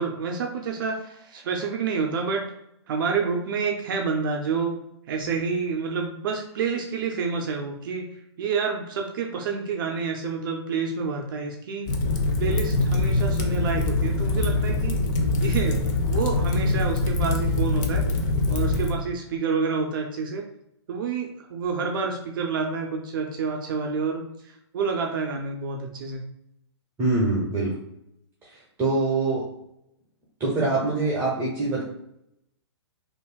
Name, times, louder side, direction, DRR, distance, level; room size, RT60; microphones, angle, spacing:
voice 1, 0.0-2.5 2.9-4.8 5.1-11.9 12.4-15.0 15.4-18.1 18.5-20.4 20.9-26.2, right 5 dB, 50° right, 2 dB, 0.4 m, -28 dB
Fire, 11.9-18.9, left 2 dB, 40° left, 0.5 m, -23 dB
voice 2, 27.0-27.7 28.4-29.5 30.4-31.8, right 2 dB, 15° right, -6 dB, 0.9 m, -24 dB
3.3 x 2.6 x 2.2 m, 0.80 s
hypercardioid pair, 125°, 15 cm